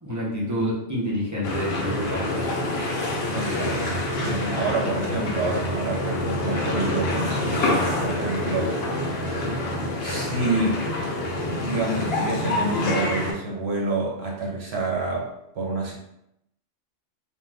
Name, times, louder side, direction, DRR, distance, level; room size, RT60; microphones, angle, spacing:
voice 1, 0.0-2.4, equal, 20° right, -7 dB, 0.6 m, -28 dB
sound 1, 1.4-13.3, left 1 dB, 60° left, 0.8 m, -26 dB
voice 2, 3.3-8.8 10.0-10.8 11.6-15.9, right 2 dB, 60° right, -2 dB, 0.9 m, -28 dB
2.5 x 2.4 x 3.3 m, 0.82 s
omnidirectional pair, 1.3 m